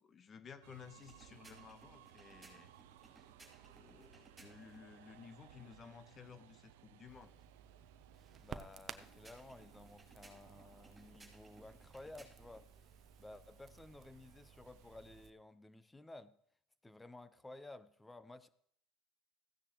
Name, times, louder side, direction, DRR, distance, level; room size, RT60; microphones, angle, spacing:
voice 1, 0.0-2.7 3.7-7.3, left 6 dB, 35° left, 1.1 m, -56 dB
sound 1, 0.6-15.3, right 12 dB, 80° right, 0.5 m, -63 dB
sound 2, 1.0-4.9 8.8-12.7, right 2 dB, 15° right, 4.6 m, -63 dB
Crackle, 7.1-15.3, right 6 dB, 35° right, 0.8 m, -56 dB
voice 2, 8.4-12.7 13.2-16.4 16.8-18.5, left 2 dB, 10° left, 0.8 m, -54 dB
15.5 x 9.6 x 3.0 m
hypercardioid pair, 90°, 0 cm